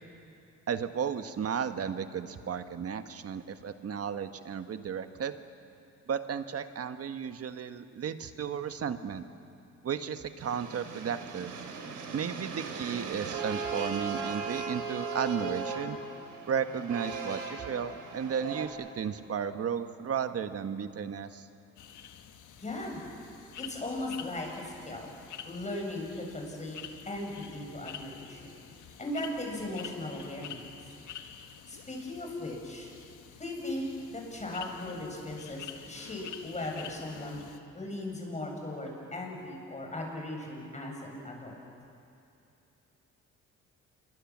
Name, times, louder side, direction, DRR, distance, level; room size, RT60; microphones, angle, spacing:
voice 1, 0.7-5.4 6.1-9.2 9.8-11.5 12.1-16.0 16.5-21.5, right 7 dB, 50° right, 9 dB, 1.4 m, -34 dB
sound 1, 10.4-18.7, right 4 dB, 85° right, 3.6 m, -38 dB
sound 2, 21.8-37.6, left 8 dB, 80° left, 1.6 m, -48 dB
voice 2, 22.6-23.0 23.6-25.1 25.4-26.8 27.1-28.6 29.0-30.6 31.7-32.9 33.4-37.4 37.7-41.6, left 1 dB, 25° left, 0 dB, 7.5 m, -38 dB
27.5 x 23.0 x 7.4 m, 2.7 s
cardioid pair, 90°, 30 cm